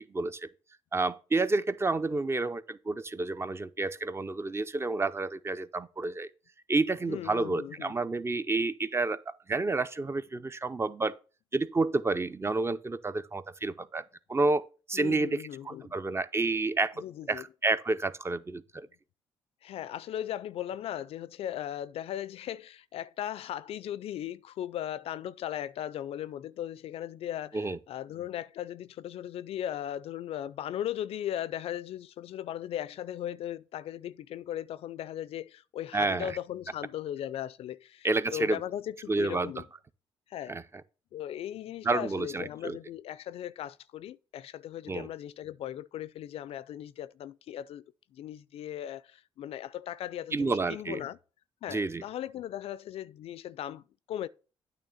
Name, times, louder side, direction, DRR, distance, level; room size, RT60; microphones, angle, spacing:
voice 1, 0.1-0.5 0.9-6.3 6.7-11.1 11.5-16.9 17.3-18.9 27.5-27.8 35.9-36.4 38.0-38.6 39.1-39.5 40.5-40.6 41.8-42.8 44.9-45.1 50.3-51.0 51.7-52.0, right 3 dB, 25° right, 0.5 m, -30 dB
voice 2, 7.1-7.9 14.9-15.9 17.0-17.4 19.6-39.7 40.3-40.6 41.1-47.8 48.1-51.2 51.6-54.3, left 11 dB, 70° left, 0.4 m, -38 dB
8.9 x 3.1 x 6.3 m
supercardioid pair, 65°, 11 cm